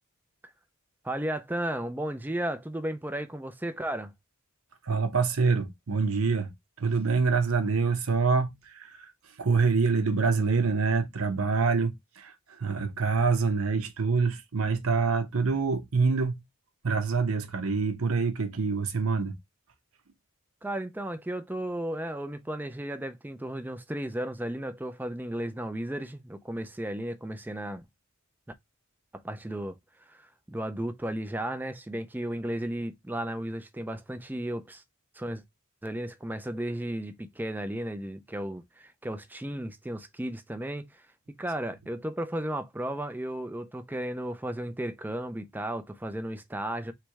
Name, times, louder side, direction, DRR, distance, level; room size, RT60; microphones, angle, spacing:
voice 1, 1.0-4.1 20.6-27.8 29.1-29.8 30.1-34.8 35.2-35.4 35.8-41.0 41.4-46.9, right 1 dB, 10° right, 0.5 m, -34 dB
voice 2, 4.8-6.5 6.8-9.1 9.4-16.4 16.8-19.3, right 4 dB, 75° right, 0.9 m, -26 dB
3.3 x 3.1 x 4.6 m
head